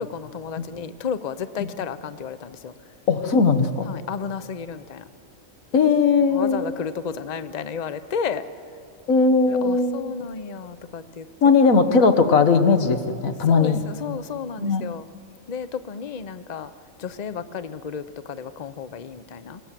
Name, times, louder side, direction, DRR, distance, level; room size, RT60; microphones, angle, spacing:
voice 1, 0.0-2.7 3.9-5.0 6.3-8.4 9.5-11.3 13.4-15.1 15.5-16.7 17.0-19.6, left 6 dB, 40° left, 12 dB, 0.8 m, -32 dB
voice 2, 3.1-3.9 5.7-6.6 9.1-10.1 11.4-13.8 14.6-14.8, left 4 dB, 85° left, 9 dB, 1.7 m, -18 dB
27.5 x 18.5 x 7.5 m, 2.6 s
omnidirectional pair, 1.4 m